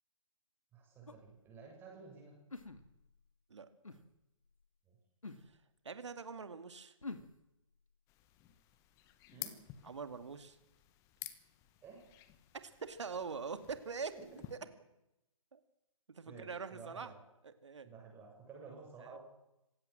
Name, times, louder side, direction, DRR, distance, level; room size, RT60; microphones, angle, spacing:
voice 1, 0.7-2.3 4.9-5.0 9.3-9.6 11.8-12.0 14.1-14.4 16.2-17.2 17.8-19.2, right 4 dB, 10° right, 0 dB, 7.6 m, -53 dB
sound 1, 1.1-1.3 2.5-3.2 3.8-4.0 5.2-5.5 7.0-7.3, left 3 dB, 75° left, 2.5 m, -46 dB
voice 2, 5.8-6.9 9.8-10.6 12.6-14.1 14.5-14.6 15.5-15.6 16.1-17.1 17.4-17.9, right 5 dB, 60° right, 11 dB, 2.3 m, -43 dB
sound 2, 8.1-14.6, left 14 dB, 15° left, 1.3 m, -52 dB
26.5 x 16.5 x 7.6 m, 0.89 s
figure-of-eight pair, 135°, 17 cm